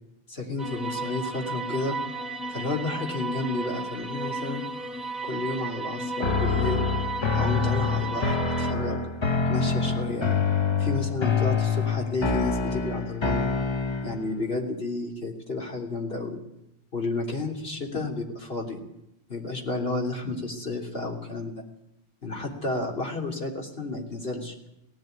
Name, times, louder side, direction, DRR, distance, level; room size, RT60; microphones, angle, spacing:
voice 1, 0.3-2.0 2.5-4.6 5.2-6.8 7.3-9.0 9.5-10.3 10.8-13.5 14.0-16.4 16.9-18.8 19.3-21.6 22.2-24.5, left 2 dB, 65° left, 1 dB, 3.4 m, -31 dB
sound 1, 0.6-8.7, right 2 dB, ahead, 1.3 m, -34 dB
sound 2, 6.2-14.3, left 5 dB, 30° left, 0.8 m, -26 dB
18.0 x 15.5 x 9.3 m, 0.84 s
omnidirectional pair, 1.1 m